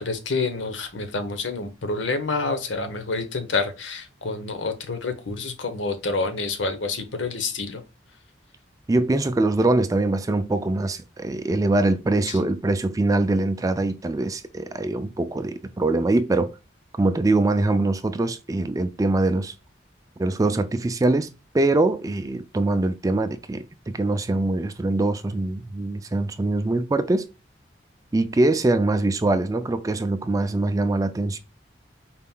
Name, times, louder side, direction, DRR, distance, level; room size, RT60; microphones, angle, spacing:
voice 1, 0.0-7.8 12.3-12.4, left 3 dB, 85° left, 0.9 m, -28 dB
voice 2, 8.9-16.5 17.0-19.5 20.2-27.3 28.1-31.4, right 2 dB, 20° right, 0.3 m, -23 dB
4.2 x 3.6 x 2.2 m
head